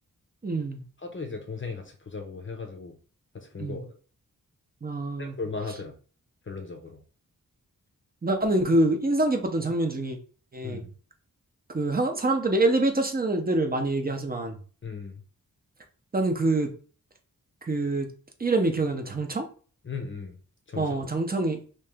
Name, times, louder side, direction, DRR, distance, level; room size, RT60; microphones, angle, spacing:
voice 1, 0.4-0.8 3.6-3.8 4.8-5.4 8.2-10.2 10.5-10.8 11.7-14.6 16.1-16.7 17.7-18.1 18.4-19.4 20.8-21.6, right 2 dB, 25° right, 5 dB, 0.6 m, -25 dB
voice 2, 1.0-2.9 3.3-3.9 5.2-5.9 6.5-7.0 10.6-10.9 14.8-15.2 19.8-20.3 20.7-21.1, left 4 dB, 35° left, 4 dB, 0.6 m, -37 dB
3.0 x 2.8 x 3.4 m, 0.40 s
wide cardioid pair, 100°, 34 cm